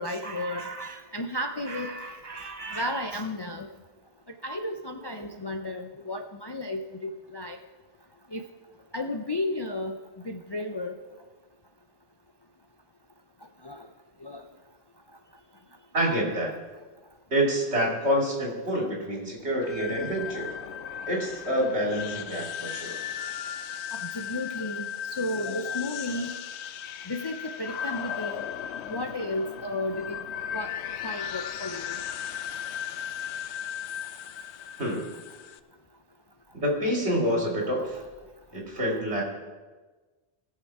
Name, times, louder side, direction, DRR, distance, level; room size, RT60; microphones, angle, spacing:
voice 1, 0.0-3.7 4.4-7.6 8.3-8.4 8.9-10.0 10.2-11.0 13.6-13.9 14.2-14.4 23.9-26.4 27.1-28.4 28.9-30.2 30.5-30.7 31.0-32.0, left 1 dB, 35° left, 4 dB, 0.4 m, -33 dB
voice 2, 15.9-16.5 17.3-20.5 21.1-23.0 34.8-35.1 36.5-38.0 38.5-39.2, equal, 70° right, -1 dB, 3.0 m, -27 dB
sound 1, 19.6-35.6, left 9 dB, 75° left, 0.9 m, -36 dB
19.5 x 6.5 x 4.7 m, 1.3 s
omnidirectional pair, 1.1 m